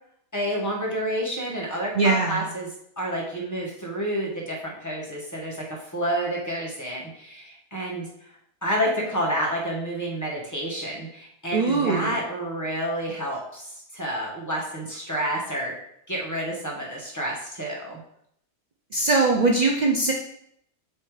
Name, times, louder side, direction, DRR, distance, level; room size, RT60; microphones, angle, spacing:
voice 1, 0.3-2.7 3.0-8.1 8.6-15.7 16.1-18.0, equal, 10° left, -4 dB, 1.5 m, -29 dB
voice 2, 2.0-2.5 11.5-12.2 18.9-20.1, right 3 dB, 65° right, 0 dB, 0.4 m, -21 dB
7.3 x 3.3 x 5.0 m, 0.72 s
omnidirectional pair, 1.7 m